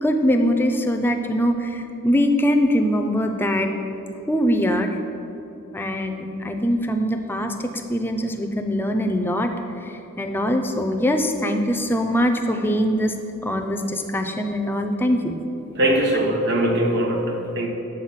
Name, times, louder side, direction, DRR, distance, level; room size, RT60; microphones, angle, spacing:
voice 1, 0.0-3.7 4.3-4.9 5.7-9.5 10.2-13.1 13.4-15.3 16.1-16.2, equal, 10° left, 5 dB, 0.3 m, -22 dB
voice 2, 15.7-17.7, right 1 dB, 55° right, 1 dB, 0.8 m, -21 dB
6.5 x 3.9 x 5.6 m, 3.0 s
head